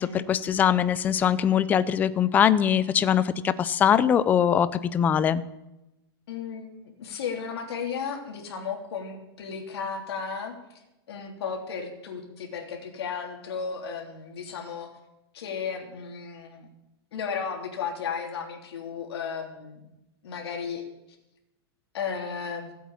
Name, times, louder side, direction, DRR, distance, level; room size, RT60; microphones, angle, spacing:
voice 1, 0.0-5.4, left 9 dB, 10° left, 16 dB, 0.4 m, -22 dB
voice 2, 6.3-10.8 11.1-14.9 15.3-16.7 17.1-19.8 20.2-20.8 21.9-22.7, left 6 dB, 70° left, 1 dB, 3.2 m, -34 dB
15.5 x 8.5 x 8.6 m, 0.93 s
supercardioid pair, 165°, 14 cm